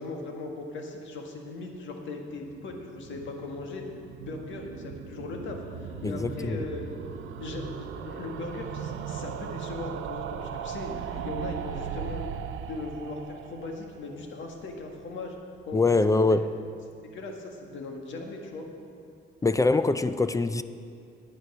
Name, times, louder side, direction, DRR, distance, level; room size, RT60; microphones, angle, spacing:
voice 1, 0.0-3.8 4.2-6.9 7.4-12.2 12.7-15.3 15.7-16.2 17.0-18.7, left 3 dB, 70° left, 1.7 m, -38 dB
sound 1, 2.3-15.4 15.7-15.8 16.0-16.1 16.3-16.4, right 8 dB, 80° right, 0.7 m, -38 dB
voice 2, 6.0-6.6 15.7-16.5 19.4-20.6, left 3 dB, 15° left, 0.4 m, -23 dB
9.4 x 9.2 x 6.0 m
cardioid pair, 90°, 20 cm